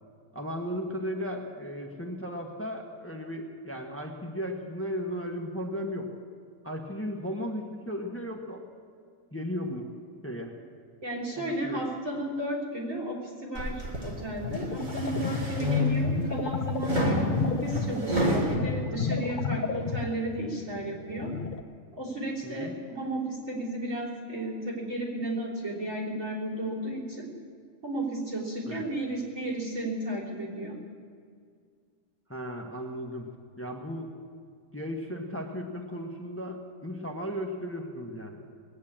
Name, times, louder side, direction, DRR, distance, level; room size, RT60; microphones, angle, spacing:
voice 1, 0.3-6.1 6.6-8.6 9.3-9.9 10.2-10.5 11.4-11.8 22.4-22.8 28.7-28.8 32.3-33.3 33.6-34.1 34.7-38.4, equal, 10° left, 1 dB, 1.2 m, -35 dB
voice 2, 11.0-21.4 22.0-27.3 27.8-30.8, right 1 dB, 80° right, -2 dB, 3.9 m, -33 dB
sound 1, 13.5-14.1 14.6-16.2 16.8-18.6, equal, 35° right, 1.9 m, -28 dB
sound 2, 14.0-21.6, left 5 dB, 45° left, 0.8 m, -32 dB
19.5 x 8.5 x 8.7 m, 2.1 s
omnidirectional pair, 1.4 m